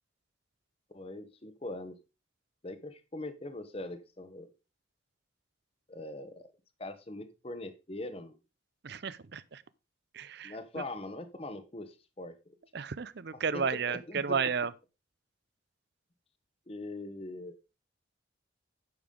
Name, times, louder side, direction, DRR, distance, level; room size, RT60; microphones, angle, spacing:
voice 1, 0.9-2.0 2.6-4.5 5.9-6.5 6.8-8.4 10.4-12.6 13.3-14.5 16.7-17.6, left 2 dB, 30° left, 0.9 m, -42 dB
voice 2, 8.8-9.6 10.1-10.5 12.7-14.7, right 6 dB, 55° right, 0.5 m, -32 dB
10.5 x 7.0 x 3.7 m
head